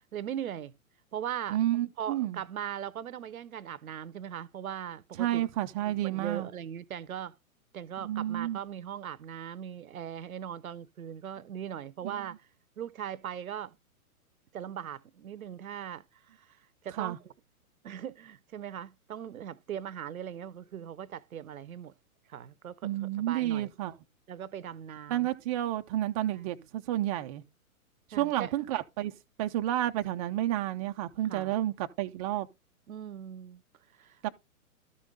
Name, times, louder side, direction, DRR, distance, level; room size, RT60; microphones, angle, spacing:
voice 1, 0.1-0.7 1.1-1.6 2.0-5.4 6.0-7.3 7.7-12.4 12.8-13.8 14.5-16.0 16.4-16.5 16.8-17.3 17.8-21.9 22.3-23.7 24.3-25.3 26.3-26.6 28.1-28.7 31.3-31.5 32.9-33.6 34.0-34.3, right 9 dB, 75° right, 0.8 m, -39 dB
voice 2, 1.5-2.4 5.2-6.5 8.0-8.6 12.0-12.3 16.9-17.2 22.8-24.0 25.1-27.4 28.2-29.1 29.4-32.5 34.2-34.3, right 13 dB, 25° right, 0.5 m, -30 dB
12.5 x 5.3 x 3.7 m
hypercardioid pair, 120°, 43 cm